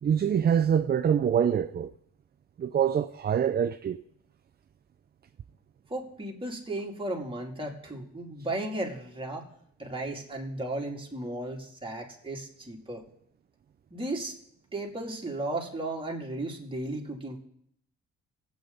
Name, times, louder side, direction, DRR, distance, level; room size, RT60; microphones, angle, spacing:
voice 1, 0.0-1.9 2.6-4.0, right 8 dB, 35° right, 0.5 m, -25 dB
voice 2, 5.9-9.5 9.8-13.0 13.9-14.3 14.7-17.4, right 2 dB, 15° right, 2.7 m, -35 dB
19.5 x 8.4 x 4.0 m
cardioid pair, 90°, 30 cm